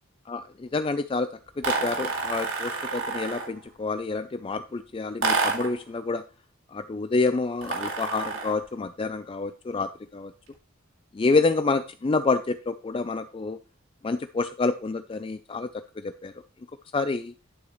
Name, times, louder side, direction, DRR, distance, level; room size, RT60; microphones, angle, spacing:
voice 1, 0.3-1.3 1.6-6.2 6.7-10.3 11.1-13.6 14.0-15.7 16.0-16.3 16.9-17.3, left 3 dB, 25° left, 10 dB, 0.4 m, -28 dB
sound 1, 1.6-3.6 5.2-5.8 7.6-8.6, right 4 dB, 75° right, 2.3 m, -29 dB
11.0 x 7.2 x 3.1 m, 0.35 s
head